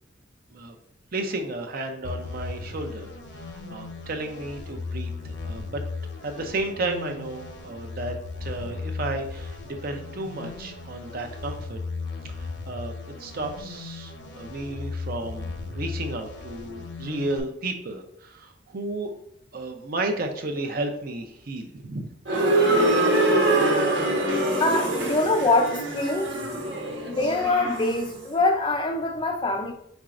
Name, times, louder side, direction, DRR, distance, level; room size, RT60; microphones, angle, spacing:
voice 1, 1.1-5.8 6.2-8.2 8.4-11.8 12.4-12.9 13.2-19.1 19.5-22.1, right 2 dB, 50° right, 0.6 m, -33 dB
sound 1, 2.0-17.4, left 4 dB, 70° left, 0.8 m, -36 dB
sound 2, 22.3-28.2, right 1 dB, 70° right, 1.1 m, -24 dB
voice 2, 24.6-26.3 27.1-29.7, left 2 dB, 25° left, 0.4 m, -24 dB
5.0 x 4.3 x 2.4 m
head